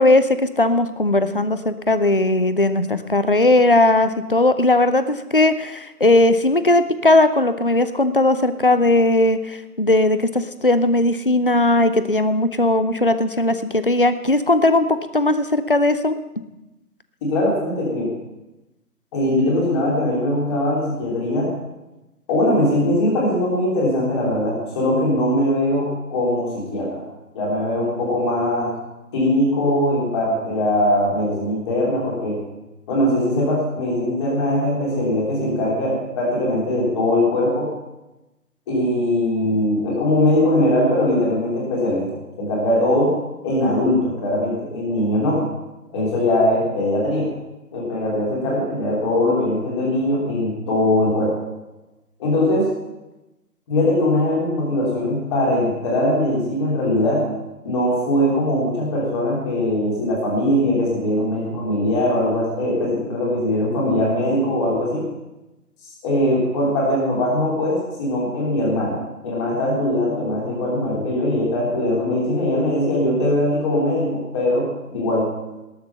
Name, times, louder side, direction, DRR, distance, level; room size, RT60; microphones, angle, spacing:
voice 1, 0.0-16.2, left 2 dB, 35° left, 12 dB, 0.5 m, -18 dB
voice 2, 17.2-18.1 19.1-21.5 22.3-27.0 27.3-28.7 29.1-32.4 32.9-37.7 38.7-43.1 43.4-45.4 45.9-47.3 47.7-51.3 52.2-52.7 53.7-57.2 57.6-65.0 65.8-75.3, left 1 dB, 15° left, -4 dB, 3.2 m, -21 dB
19.0 x 6.9 x 5.8 m, 1.0 s
figure-of-eight pair, 155°, 47 cm